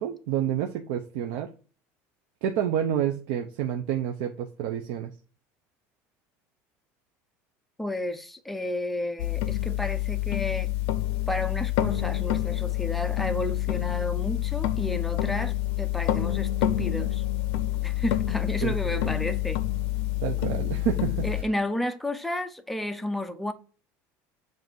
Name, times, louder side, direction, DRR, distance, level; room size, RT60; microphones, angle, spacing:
voice 1, 0.0-1.5 2.4-5.1 18.6-19.1 20.2-21.2, right 10 dB, 65° right, 0.6 m, -29 dB
voice 2, 7.8-10.7 11.3-17.2 17.8-19.6 21.2-23.5, left 1 dB, ahead, 0.4 m, -32 dB
sound 1, 9.2-21.4, left 14 dB, 60° left, 0.6 m, -27 dB
7.5 x 2.6 x 5.9 m
cardioid pair, 180°, 6 cm